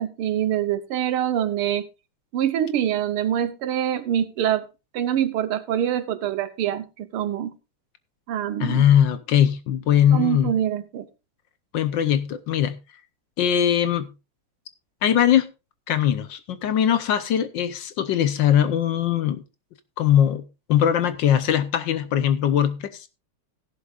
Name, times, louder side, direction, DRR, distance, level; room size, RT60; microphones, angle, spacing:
voice 1, 0.0-1.9 2.3-4.7 4.9-7.5 8.3-8.9 10.1-11.1, right 10 dB, 80° right, 1.8 m, -25 dB
voice 2, 8.6-10.5 11.7-12.8 13.4-14.1 15.0-15.5 15.9-19.4 20.0-20.4 20.7-23.1, left 10 dB, 65° left, 1.3 m, -20 dB
16.0 x 11.0 x 2.4 m
omnidirectional pair, 2.4 m